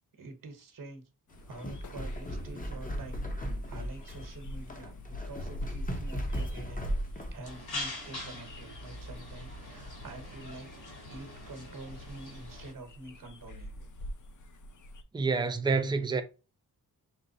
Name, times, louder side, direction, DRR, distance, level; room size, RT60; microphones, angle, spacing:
voice 1, 0.2-1.0 1.5-10.7 11.1-13.9, right 2 dB, 55° right, 1.2 m, -47 dB
sound 1, 1.3-15.0, left 1 dB, 50° left, 0.7 m, -46 dB
sound 2, 1.3-7.4, equal, 20° left, 0.9 m, -36 dB
sound 3, 7.4-12.7, left 2 dB, 75° left, 2.7 m, -43 dB
voice 2, 15.1-16.2, right 4 dB, 10° right, 0.5 m, -28 dB
6.3 x 2.1 x 3.9 m
wide cardioid pair, 120°, 39 cm